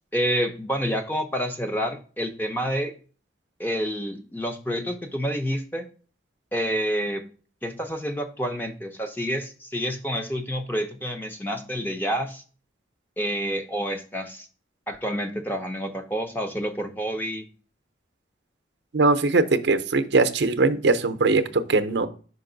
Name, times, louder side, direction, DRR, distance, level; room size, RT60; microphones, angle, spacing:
voice 1, 0.1-2.9 3.6-5.9 6.5-7.2 7.6-12.4 13.2-14.5 14.9-17.5, equal, 10° left, 5 dB, 0.7 m, -28 dB
voice 2, 18.9-22.1, right 3 dB, 70° right, 10 dB, 0.6 m, -21 dB
5.2 x 5.2 x 3.9 m, 0.38 s
head